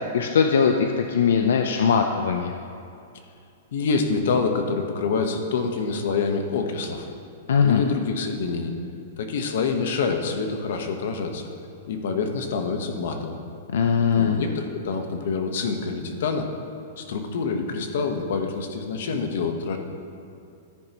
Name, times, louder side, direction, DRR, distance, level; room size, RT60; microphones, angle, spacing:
voice 1, 0.1-2.5 7.5-7.8 13.7-14.4, left 6 dB, 85° left, 4 dB, 0.6 m, -20 dB
voice 2, 3.7-7.1 7.6-8.7 9.2-11.5 11.9-13.4 14.1-16.5 17.0-19.8, left 4 dB, 65° left, 5 dB, 1.2 m, -26 dB
14.0 x 10.0 x 3.0 m, 2.5 s
supercardioid pair, 165°, 0 cm